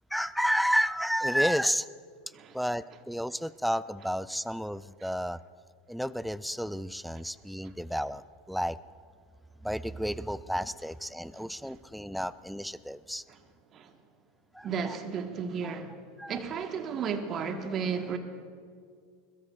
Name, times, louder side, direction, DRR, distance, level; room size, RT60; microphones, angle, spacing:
voice 1, 0.1-1.9 2.5-5.4 5.9-8.8 9.6-13.2 14.5-15.0 15.6-15.7 16.2-16.4, equal, ahead, 0.4 m, -31 dB
voice 2, 14.6-16.0 16.3-18.2, right 6 dB, 35° right, 1.4 m, -33 dB
22.0 x 21.5 x 2.4 m
hypercardioid pair, 85°, 0 cm